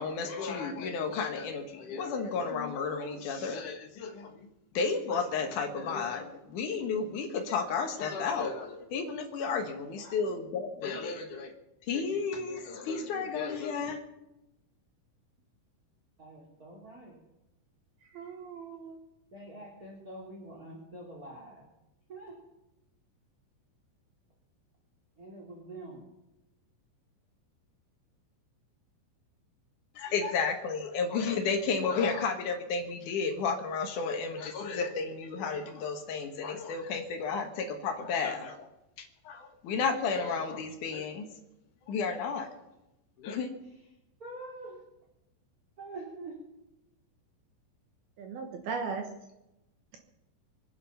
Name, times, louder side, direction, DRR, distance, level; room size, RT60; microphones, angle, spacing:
voice 1, 0.0-4.5 4.7-11.5 11.9-14.0 30.0-38.7 39.0-41.3 41.8-42.5 43.2-43.5, left 5 dB, 65° left, 4 dB, 2.0 m, -32 dB
voice 2, 16.2-17.2 19.3-21.6 22.1-22.3 25.2-26.0 44.2-44.8 45.8-46.4, right 2 dB, 25° right, -4 dB, 2.4 m, -45 dB
voice 3, 18.0-19.0 48.2-49.1, right 5 dB, 65° right, 4 dB, 2.6 m, -37 dB
24.5 x 9.7 x 5.8 m, 0.93 s
omnidirectional pair, 5.7 m